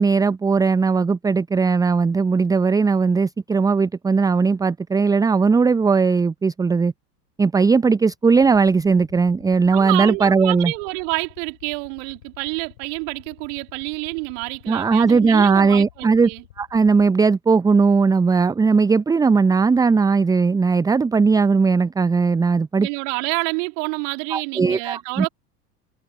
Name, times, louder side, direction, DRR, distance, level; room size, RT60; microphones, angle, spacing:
voice 1, 0.0-6.9 7.4-10.7 14.7-16.3 16.6-22.9 24.3-25.3, right 4 dB, 10° right, 0.6 m, -18 dB
sound 1, 8.3-17.1, left 15 dB, 60° left, 6.4 m, -50 dB
voice 2, 9.7-16.4 22.8-25.3, right 40 dB or more, 50° right, 2.9 m, -28 dB
figure-of-eight pair, 80°, 49 cm